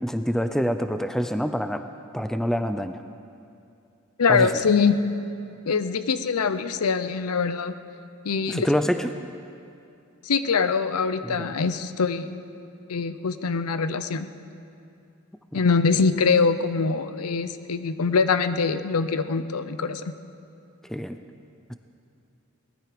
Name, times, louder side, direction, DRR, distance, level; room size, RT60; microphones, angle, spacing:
voice 1, 0.0-1.8 2.1-3.0 4.3-4.5 8.5-9.1 11.2-11.6 20.8-21.2 21.7-21.8, equal, ahead, 8 dB, 0.4 m, -26 dB
voice 2, 4.2-5.0 5.7-7.7 8.2-8.7 10.2-12.3 12.9-14.3 15.5-20.1, left 5 dB, 85° left, 12 dB, 0.7 m, -23 dB
19.0 x 12.5 x 5.1 m, 2.6 s
head